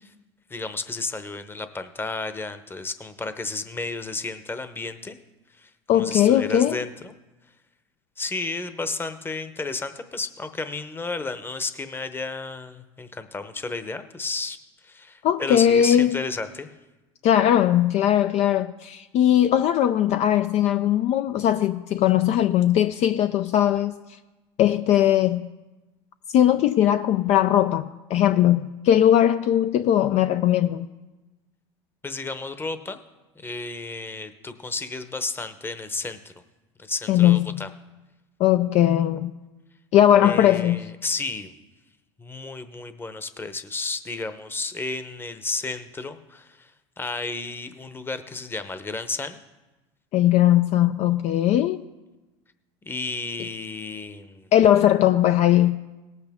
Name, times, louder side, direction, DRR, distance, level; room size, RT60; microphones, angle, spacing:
voice 1, 0.5-5.2 5.5-7.1 8.2-16.7 32.0-33.0 33.3-36.3 36.8-37.7 40.2-41.5 42.2-49.4 52.8-54.5, left 3 dB, 15° left, 0.9 m, -32 dB
voice 2, 5.9-6.8 15.2-16.2 17.2-23.9 24.6-25.5 26.3-30.9 37.1-37.6 38.4-39.3 39.9-40.8 50.1-51.9 54.5-55.8, left 11 dB, 50° left, 0.4 m, -19 dB
18.0 x 8.2 x 3.6 m
supercardioid pair, 95°, 14 cm